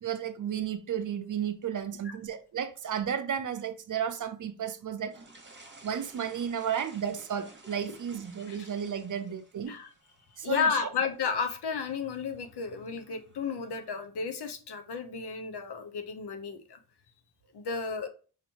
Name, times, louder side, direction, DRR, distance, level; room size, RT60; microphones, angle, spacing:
voice 1, 0.0-5.1 5.8-9.7 10.4-10.9, right 8 dB, 50° right, 0.6 m, -33 dB
sound 1, 5.1-14.1, right 2 dB, 30° right, 1.1 m, -56 dB
voice 2, 10.4-16.8 17.5-18.1, left 6 dB, 80° left, 0.8 m, -33 dB
5.0 x 2.7 x 2.8 m
cardioid pair, 75°, 39 cm